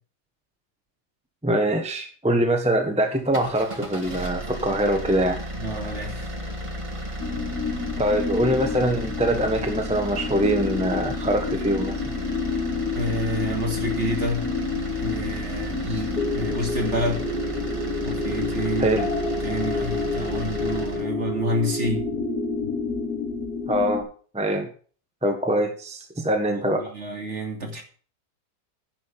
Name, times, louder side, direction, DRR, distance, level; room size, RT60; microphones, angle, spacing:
voice 1, 1.4-5.4 8.0-12.1 15.8-16.0 18.8-19.1 23.7-24.1 24.3-24.7 25.2-26.9, right 1 dB, 5° right, 1.2 m, -23 dB
sound 1, 3.2-21.1, right 1 dB, 20° right, 1.4 m, -34 dB
voice 2, 5.6-6.3 12.9-14.5 15.0-17.3 18.0-19.0 19.4-22.1 26.7-27.8, equal, 45° right, 2.9 m, -29 dB
sound 2, 7.2-24.0, left 4 dB, 60° left, 3.2 m, -29 dB
10.5 x 6.4 x 7.7 m
omnidirectional pair, 1.8 m